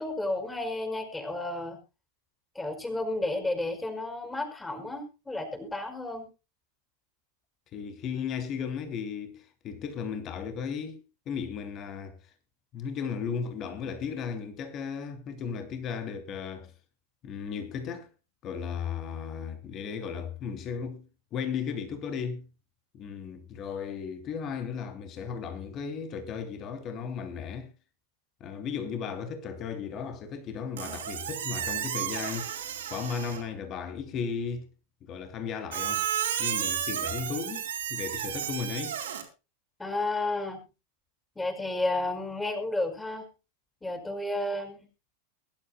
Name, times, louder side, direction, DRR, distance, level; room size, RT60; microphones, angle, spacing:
voice 1, 0.0-1.8 2.6-6.3 39.8-40.6 41.4-43.2 43.8-44.8, left 2 dB, 10° left, 5.5 m, -32 dB
voice 2, 7.7-12.2 12.7-16.7 17.2-18.1 18.4-22.5 22.9-27.7 28.4-32.6 32.9-34.7 35.0-36.1 36.4-39.0, left 6 dB, 35° left, 2.9 m, -35 dB
Squeak, 30.8-33.5 35.7-39.2, right 9 dB, 70° right, 3.6 m, -32 dB
22.5 x 12.0 x 2.3 m
hypercardioid pair, 95°, 0 cm